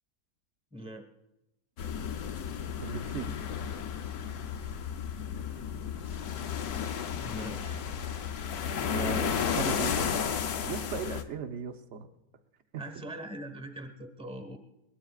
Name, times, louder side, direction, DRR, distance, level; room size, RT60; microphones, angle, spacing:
voice 1, 0.7-1.1 6.0-6.1 7.2-7.8 12.7-14.6, right 1 dB, 5° right, 6 dB, 1.3 m, -42 dB
sound 1, 1.8-11.2, left 7 dB, 90° left, 1.3 m, -33 dB
voice 2, 2.8-3.3 8.8-10.2 10.7-12.1 12.7-12.8, right 6 dB, 55° right, 7 dB, 1.2 m, -37 dB
21.5 x 19.0 x 2.4 m, 0.92 s
omnidirectional pair, 1.6 m